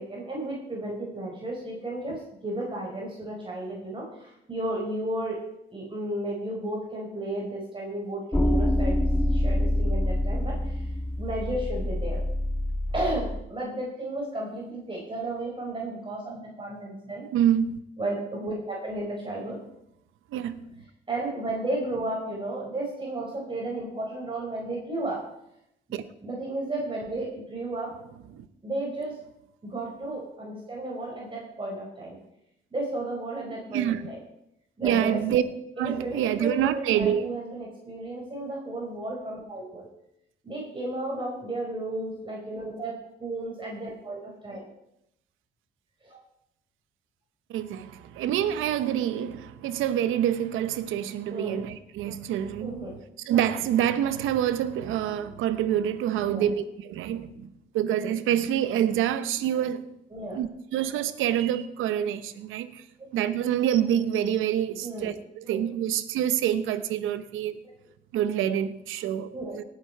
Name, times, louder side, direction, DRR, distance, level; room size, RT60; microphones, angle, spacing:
voice 1, 0.0-5.4 5.7-9.0 9.3-10.9 11.2-12.2 12.9-17.2 18.0-19.6 21.1-25.2 25.9-27.9 28.6-29.1 29.6-32.2 32.7-34.2 34.8-35.2 35.8-39.9 40.4-44.7 46.0-46.2 51.3-51.6 52.6-52.9 56.2-56.5 60.1-60.4 63.0-63.1 64.8-65.1 65.4-65.6 69.3-69.6, right 1 dB, 25° right, 4.4 m, -33 dB
sound 1, 8.3-13.4, left 1 dB, 10° left, 0.9 m, -26 dB
voice 2, 17.3-17.8 20.3-20.7 25.9-26.0 28.3-28.5 33.7-34.0 34.8-35.4 35.8-37.3 47.5-52.9 53.3-57.5 57.7-59.9 60.3-62.8 63.1-67.6 68.1-69.6, right 10 dB, 90° right, 0.9 m, -26 dB
18.0 x 8.3 x 4.6 m
cardioid pair, 90°, 20 cm